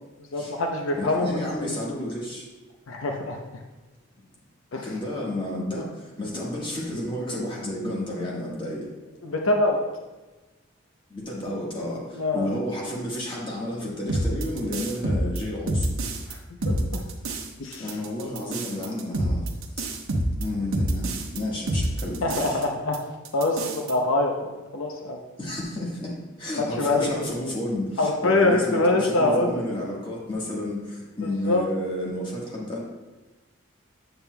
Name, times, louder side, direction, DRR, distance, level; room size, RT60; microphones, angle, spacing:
voice 1, 0.3-1.7 2.9-3.4 4.7-4.8 9.2-9.8 12.1-12.5 16.3-16.4 16.6-17.0 17.6-17.8 22.2-23.0 23.3-24.3 24.7-25.2 26.5-27.1 28.0-29.6 31.2-31.6, left 2 dB, 75° left, 2 dB, 0.6 m, -24 dB
voice 2, 1.0-2.4 4.8-5.9 6.2-8.8 11.1-15.9 17.8-19.5 20.4-22.6 25.4-26.1 26.4-32.8, left 1 dB, 25° left, -4 dB, 1.4 m, -31 dB
sound 1, 14.1-16.3 16.6-17.5 17.7-21.4 21.7-22.6 22.9-23.0 23.2-23.9, right 1 dB, 85° right, 0.8 m, -27 dB
7.8 x 7.0 x 2.2 m, 1.2 s
head